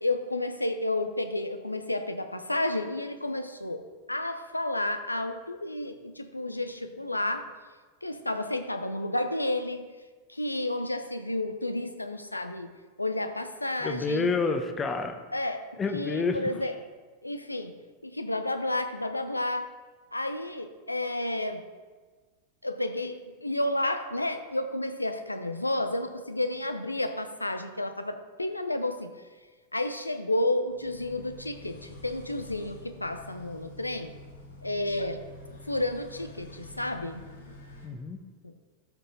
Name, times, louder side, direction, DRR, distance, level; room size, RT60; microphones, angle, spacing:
voice 1, 0.0-3.8 4.1-7.5 8.0-9.8 10.3-12.7 13.0-14.3 15.3-15.6 15.9-16.7 17.2-17.8 18.0-19.7 20.1-21.6 22.6-29.1 29.7-34.2 34.6-35.2 35.7-37.3 38.4-38.5, left 1 dB, 85° left, 8 dB, 0.7 m, -31 dB
voice 2, 13.8-15.2 15.8-16.4 37.8-38.2, left 4 dB, 20° left, 7 dB, 0.9 m, -28 dB
sound 1, 30.7-37.9, left 2 dB, 65° left, 1.9 m, -48 dB
13.0 x 5.3 x 4.0 m, 1.4 s
figure-of-eight pair, 90°, 0 cm